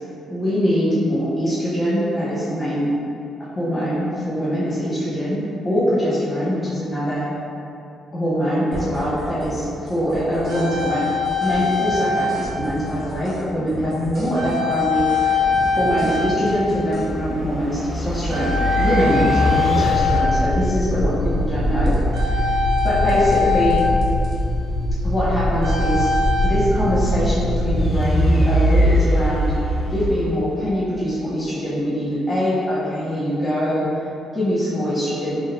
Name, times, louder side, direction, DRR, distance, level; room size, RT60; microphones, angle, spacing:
voice 1, 0.3-2.9 3.5-7.3 8.1-15.5 15.7-18.5 18.8-22.0 22.2-22.5 22.8-23.8 25.0-26.1 26.4-29.5 29.9-33.9 34.3-35.4, equal, 20° left, -10 dB, 1.3 m, -23 dB
sound 1, 8.7-9.6 9.9-13.4 13.7-17.1 21.8-22.2 22.8-23.4 23.7-24.4, right 1 dB, 40° right, 1.3 m, -35 dB
sound 2, 10.1-12.6 12.9-13.2 14.3-17.1 17.4-17.8 18.3-21.0 22.1-24.5 25.6-26.5, left 4 dB, 55° right, 0.6 m, -23 dB
sound 3, 14.8-30.8, equal, 35° left, 0.7 m, -22 dB
3.8 x 3.4 x 2.7 m, 2.7 s
cardioid pair, 90°, 0 cm